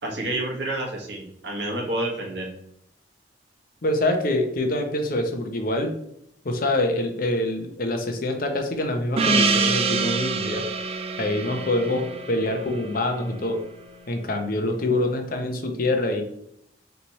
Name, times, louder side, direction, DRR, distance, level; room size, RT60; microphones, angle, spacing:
voice 1, 0.0-2.5, right 1 dB, 70° right, 0 dB, 1.2 m, -29 dB
voice 2, 3.8-5.9 6.4-10.6 11.2-13.6 14.1-16.2, left 1 dB, 50° left, 4 dB, 0.7 m, -25 dB
Gong, 9.2-13.9, right 4 dB, 35° right, 0.3 m, -26 dB
3.4 x 3.0 x 4.1 m, 0.73 s
head